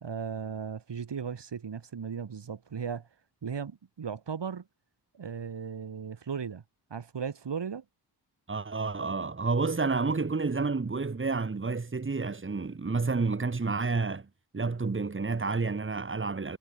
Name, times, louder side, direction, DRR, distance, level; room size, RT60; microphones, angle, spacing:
voice 1, 0.0-3.1 3.4-4.6 5.1-6.6 6.9-7.8, right 6 dB, 85° right, 2.4 m, -36 dB
voice 2, 8.5-14.3 14.5-16.6, right 4 dB, 30° right, 1.3 m, -30 dB
wide cardioid pair, 105°, 41 cm